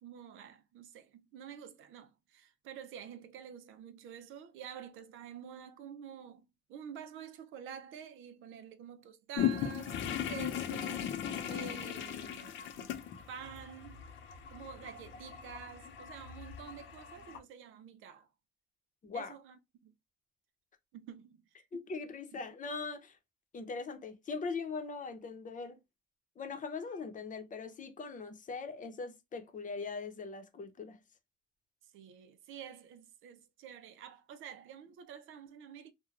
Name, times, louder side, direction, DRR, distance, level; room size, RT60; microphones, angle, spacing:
voice 1, 0.0-12.9 13.3-18.3 19.1-19.9 20.9-21.9 22.3-22.4 31.8-35.9, right 8 dB, 85° right, 0.5 m, -49 dB
sound 1, 9.3-17.4, left 10 dB, 75° left, 0.6 m, -38 dB
voice 2, 19.0-19.3 21.7-23.2 23.5-25.8 26.4-31.0, left 4 dB, 40° left, 0.7 m, -41 dB
3.2 x 2.2 x 2.4 m
cardioid pair, 90°, 20 cm